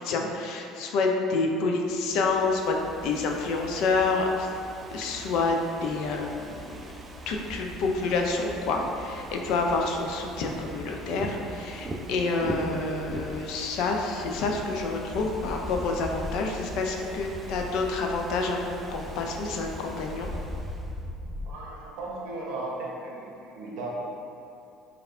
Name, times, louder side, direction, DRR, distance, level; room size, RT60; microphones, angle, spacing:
voice 1, 0.0-4.5 4.9-6.8 7.3-20.3, left 3 dB, 60° left, 2 dB, 0.3 m, -28 dB
Ocean / Fireworks, 1.8-21.1, right 2 dB, 25° right, 0.3 m, -42 dB
sound 1, 2.9-3.3 3.7-5.0 5.4-21.5, left 1 dB, 20° left, 1.0 m, -42 dB
voice 2, 21.4-23.9, right 2 dB, 60° right, -4 dB, 0.7 m, -36 dB
4.6 x 2.3 x 2.3 m, 2.7 s
figure-of-eight pair, 60°, 0 cm